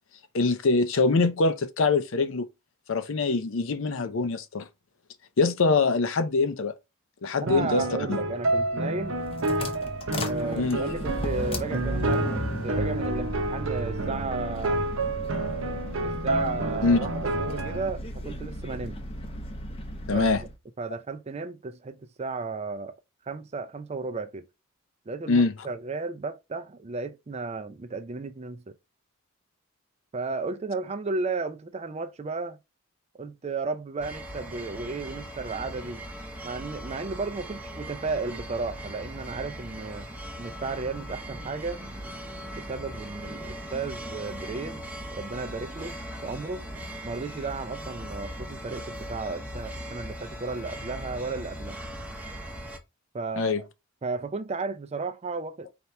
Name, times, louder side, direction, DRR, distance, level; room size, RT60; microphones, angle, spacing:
voice 1, 0.3-2.5 2.9-4.7 5.4-6.7 7.2-7.8 8.1-8.2 10.6-10.8 16.8-17.0 20.1-20.4 25.3-25.5 53.4-53.6, left 3 dB, 65° left, 0.5 m, -23 dB
voice 2, 7.4-9.2 10.2-14.8 16.0-19.0 20.1-20.4 20.8-22.9 23.3-24.4 25.1-28.6 30.1-32.6 33.1-36.0 36.4-40.1 40.4-41.8 42.5-44.8 45.1-46.0 46.2-46.7 47.0-51.8 53.1-53.7 54.0-55.7, right 4 dB, 30° right, 0.4 m, -34 dB
sound 1, 7.5-17.9, right 2 dB, 70° right, 0.8 m, -29 dB
sound 2, 9.0-20.6, left 1 dB, 25° left, 0.7 m, -36 dB
sound 3, 34.0-52.8, equal, 5° right, 0.8 m, -39 dB
4.3 x 2.9 x 3.3 m
head